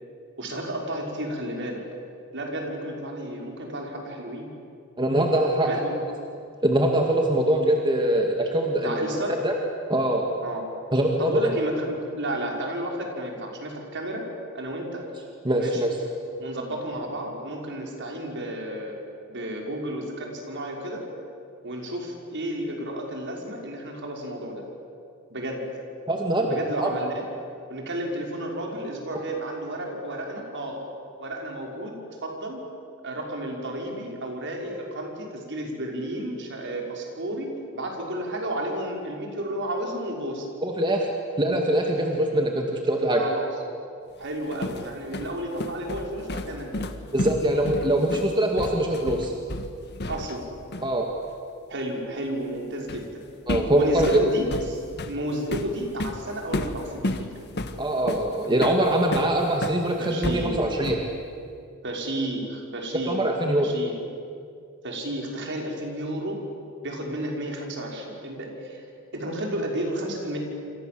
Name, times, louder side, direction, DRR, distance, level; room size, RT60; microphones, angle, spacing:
voice 1, 0.4-1.8 2.3-4.5 5.6-5.9 8.8-9.4 10.4-10.7 11.2-14.3 14.5-15.0 15.6-15.9 16.4-19.0 19.3-21.0 21.6-24.6 25.3-25.6 26.5-27.3 27.7-30.8 31.2-32.0 32.2-32.6 33.0-40.5 43.2-43.5 44.2-46.9 50.1-50.5 51.7-53.2 53.7-57.3 60.0-60.7 61.8-63.3 63.6-64.0 64.8-66.4 66.8-68.8 69.1-70.4, right 1 dB, 60° right, 0 dB, 5.7 m, -32 dB
voice 2, 5.0-5.8 6.6-9.5 9.9-10.2 10.9-11.5 15.4-16.0 26.1-26.9 40.6-41.1 41.4-43.2 47.1-49.3 50.8-51.1 53.5-54.2 57.8-61.0 62.9-63.7, right 1 dB, 20° right, 1 dB, 2.2 m, -23 dB
sound 1, 44.2-50.5 50.7-50.9 52.9-53.1 53.5-59.8 60.2-61.2, left 1 dB, 50° left, 1.7 m, -32 dB
28.0 x 27.5 x 7.8 m, 2.4 s
head